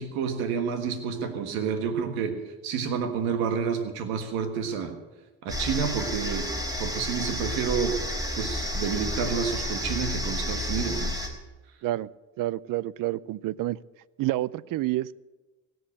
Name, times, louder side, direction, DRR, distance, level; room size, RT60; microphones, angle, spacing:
voice 1, 0.0-4.9 5.4-8.0 8.3-11.1, right 6 dB, 90° right, 7 dB, 1.6 m, -29 dB
sound 1, 5.5-11.3, left 1 dB, 10° right, 3.5 m, -31 dB
voice 2, 12.4-13.8 14.2-15.2, right 15 dB, 65° right, 22 dB, 0.5 m, -29 dB
17.0 x 7.9 x 8.5 m, 1.2 s
supercardioid pair, 70°, 36 cm